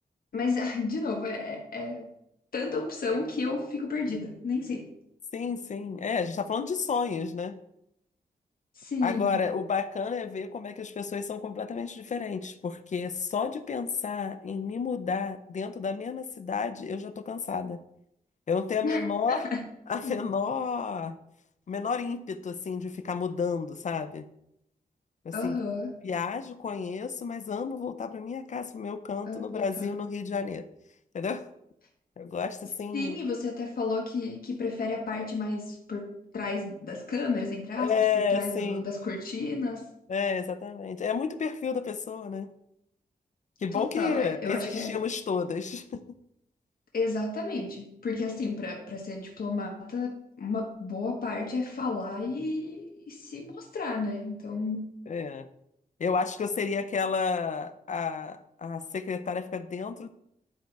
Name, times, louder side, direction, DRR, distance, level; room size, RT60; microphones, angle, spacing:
voice 1, 0.3-2.1 2.5-4.9 8.7-9.4 18.8-19.0 19.3-19.6 20.0-20.2 25.3-25.9 29.3-29.9 32.9-39.9 43.7-45.0 46.9-54.9, left 3 dB, 70° left, 0 dB, 1.4 m, -32 dB
voice 2, 5.3-7.5 9.0-17.8 18.5-19.5 19.9-21.2 21.7-24.3 25.2-25.6 26.0-30.7 31.1-31.4 32.2-33.2 37.8-38.9 40.1-42.5 43.6-46.0 55.1-55.4 56.0-60.1, left 5 dB, 50° left, 10 dB, 0.5 m, -31 dB
10.5 x 4.6 x 5.3 m, 0.78 s
wide cardioid pair, 180°, 16 cm